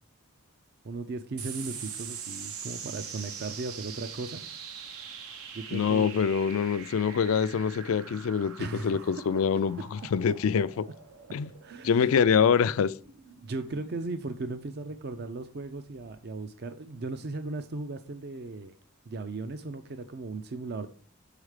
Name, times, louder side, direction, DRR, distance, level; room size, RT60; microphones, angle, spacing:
voice 1, 0.8-4.4 5.5-6.1 8.6-9.1 11.6-12.2 13.4-18.7 19.1-20.9, right 3 dB, 50° right, 0.5 m, -37 dB
sound 1, 1.4-16.2, right 7 dB, 85° right, 0.9 m, -44 dB
voice 2, 5.7-8.5 8.8-10.8 11.3-11.5 11.8-12.9, left 6 dB, 70° left, 0.4 m, -25 dB
6.4 x 4.9 x 4.8 m
head